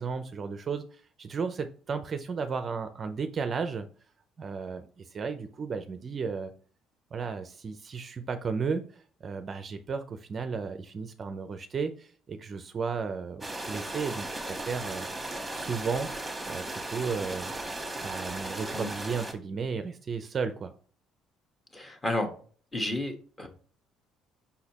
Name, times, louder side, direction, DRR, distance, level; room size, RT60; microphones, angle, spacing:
voice 1, 0.0-3.9 4.4-6.5 7.1-15.1 15.5-17.5 18.0-20.7, right 5 dB, 30° right, 8 dB, 0.5 m, -34 dB
sound 1, 13.4-19.3, right 2 dB, 5° right, 1.4 m, -36 dB
voice 2, 21.7-22.3 22.7-23.5, left 1 dB, 15° left, 5 dB, 1.3 m, -31 dB
6.3 x 5.7 x 2.9 m, 0.43 s
cardioid pair, 140°, 0 cm